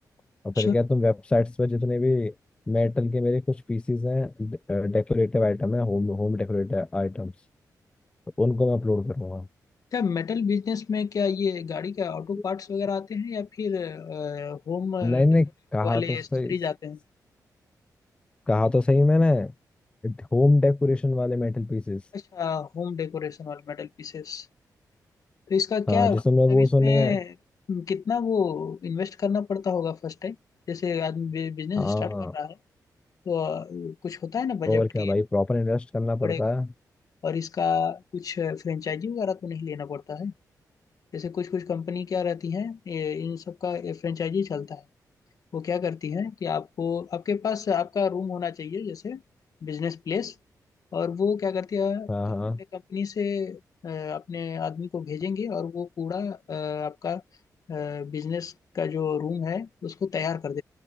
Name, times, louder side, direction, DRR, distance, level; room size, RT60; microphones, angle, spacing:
voice 1, 0.4-2.3 2.7-7.3 8.4-9.5 15.0-16.5 18.5-19.5 20.0-22.0 25.9-27.2 31.8-32.3 34.7-36.7 52.1-52.6, left 2 dB, 15° left, 0.3 m, -23 dB
voice 2, 9.9-15.2 15.8-17.0 22.1-24.5 25.5-26.2 26.5-27.3 27.7-30.4 30.7-32.6 33.2-35.1 36.2-36.5 37.2-40.3 41.1-44.8 45.5-49.2 49.6-50.3 50.9-52.1 52.7-57.2 57.7-60.6, left 6 dB, 60° left, 1.6 m, -29 dB
cardioid pair, 105°, 7 cm